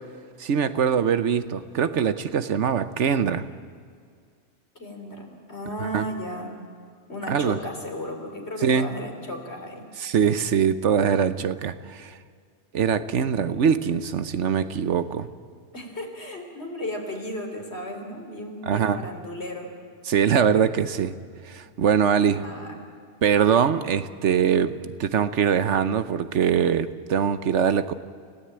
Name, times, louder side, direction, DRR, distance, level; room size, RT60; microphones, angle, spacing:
voice 1, 0.4-3.5 5.8-6.0 7.3-7.6 8.6-8.9 10.0-12.1 12.7-15.3 18.6-19.0 20.0-21.1 21.5-22.4 23.2-27.9, right 7 dB, 80° right, 12 dB, 1.2 m, -22 dB
voice 2, 4.8-6.5 7.1-9.9 15.7-19.7 22.2-22.7, equal, 65° left, 3 dB, 3.9 m, -35 dB
29.5 x 16.5 x 8.9 m, 2.2 s
omnidirectional pair, 1.2 m